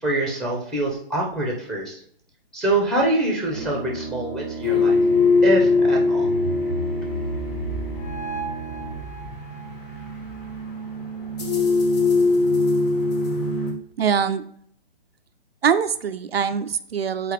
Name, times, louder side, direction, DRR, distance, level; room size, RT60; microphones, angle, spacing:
voice 1, 0.0-2.0 2.5-5.0 5.4-6.3, right 1 dB, ahead, -1 dB, 1.2 m, -25 dB
Brass instrument, 3.5-9.2, right 4 dB, 25° right, 0.6 m, -36 dB
sound 1, 4.6-13.7, left 3 dB, 40° left, 1.8 m, -22 dB
voice 2, 14.0-14.4 15.6-17.3, right 7 dB, 75° right, 9 dB, 0.6 m, -23 dB
7.6 x 4.6 x 3.4 m, 0.65 s
hypercardioid pair, 135°, 30 cm